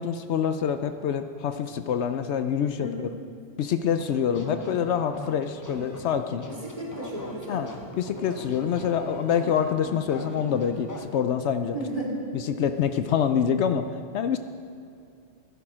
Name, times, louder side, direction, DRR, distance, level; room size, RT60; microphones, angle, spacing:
voice 1, 0.0-3.1 3.6-6.5 7.5-7.7 8.0-11.8 12.3-14.4, left 8 dB, 70° left, 9 dB, 0.9 m, -26 dB
sound 1, 3.8-11.0, left 2 dB, 15° left, 0.9 m, -42 dB
voice 2, 4.3-4.6 6.6-7.6 11.7-12.2, equal, 30° right, -3 dB, 2.5 m, -34 dB
sound 2, 5.6-6.1 6.5-8.0 8.3-9.8 10.1-11.0, right 2 dB, 85° right, 2.0 m, -44 dB
16.0 x 10.5 x 5.0 m, 2.5 s
omnidirectional pair, 1.2 m